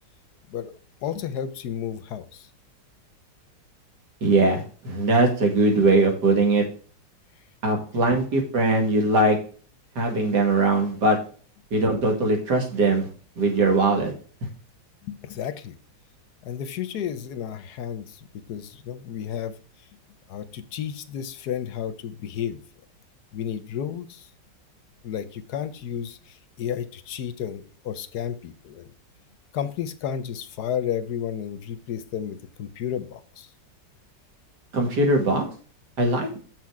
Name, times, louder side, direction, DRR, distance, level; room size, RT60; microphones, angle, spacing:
voice 1, 1.0-2.5 15.0-15.8 16.4-19.6 20.3-22.6 23.3-24.3 25.0-28.9 29.5-33.5, left 9 dB, 70° left, 12 dB, 1.2 m, -32 dB
voice 2, 4.2-6.6 7.6-9.4 10.0-11.2 11.7-13.1 13.4-14.1 34.7-35.4 36.0-36.4, right 2 dB, 65° right, 2 dB, 2.7 m, -21 dB
7.5 x 6.1 x 4.7 m, 0.41 s
omnidirectional pair, 2.0 m